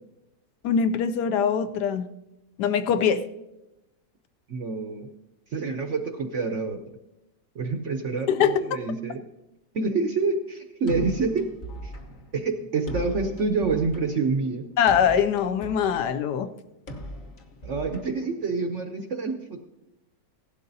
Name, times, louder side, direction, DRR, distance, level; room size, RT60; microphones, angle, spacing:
voice 1, 0.6-2.1 2.6-3.3 8.3-8.8 14.8-16.5, left 7 dB, 75° left, 11 dB, 1.1 m, -23 dB
voice 2, 4.5-5.1 5.5-6.8 7.5-9.2 9.7-11.4 11.8-11.9 12.3-14.7 17.6-19.6, right 4 dB, 60° right, 5 dB, 0.8 m, -27 dB
sound 1, 10.9-18.8, right 1 dB, 35° left, 0.9 m, -40 dB
16.0 x 11.5 x 2.7 m, 0.94 s
omnidirectional pair, 1.9 m